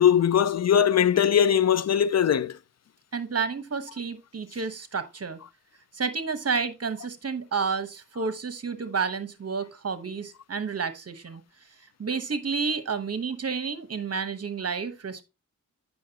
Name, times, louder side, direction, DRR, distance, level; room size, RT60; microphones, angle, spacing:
voice 1, 0.0-2.5, left 9 dB, 55° left, 0.4 m, -20 dB
voice 2, 3.1-5.4 5.9-11.4 12.0-15.2, right 5 dB, 50° right, 1.1 m, -30 dB
8.6 x 5.8 x 2.8 m
cardioid pair, 55°, 32 cm